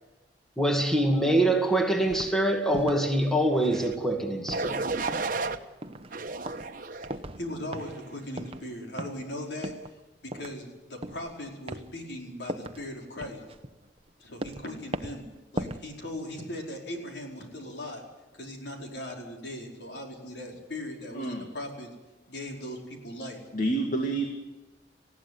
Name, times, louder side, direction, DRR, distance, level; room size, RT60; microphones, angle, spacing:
voice 1, 0.6-4.8, right 1 dB, 5° left, 3 dB, 2.1 m, -24 dB
sound 1, 2.1-2.3 2.7-3.1 3.7-4.1 4.5-4.8 5.1-5.5 5.8-6.2 6.5-6.7 7.0-7.5 7.7-8.0 8.4-8.6 9.0-9.3 9.6-10.0 10.3-10.6 11.0-11.3 11.7-11.9 12.5-12.8 13.2-14.1 14.4-14.7 14.9-15.2 15.5-15.9 16.2-16.3, right 1 dB, 30° right, 0.9 m, -38 dB
sound 2, 3.6-4.0 4.5-5.6 6.1-7.1 7.7-8.1, right 3 dB, 50° right, 1.2 m, -33 dB
voice 2, 7.4-9.7 10.2-13.4 14.2-15.3 15.5-18.0 18.4-21.9 22.3-23.4, left 1 dB, 70° left, 1 dB, 4.8 m, -39 dB
voice 3, 21.1-21.5 23.5-24.3, right 2 dB, 45° left, 3 dB, 2.2 m, -28 dB
20.0 x 15.5 x 9.6 m, 1.1 s
head